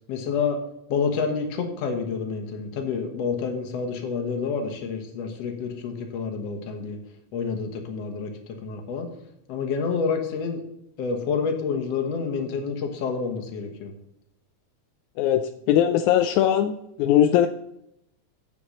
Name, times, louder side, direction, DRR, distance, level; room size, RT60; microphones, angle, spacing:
voice 1, 0.1-0.6 0.9-7.0 7.3-8.3 8.6-9.1 9.5-10.6 11.0-13.9, left 5 dB, 60° left, 4 dB, 2.3 m, -28 dB
voice 2, 15.7-16.7 17.0-17.5, left 11 dB, 85° left, 8 dB, 1.9 m, -19 dB
7.9 x 7.2 x 6.4 m, 0.79 s
omnidirectional pair, 3.3 m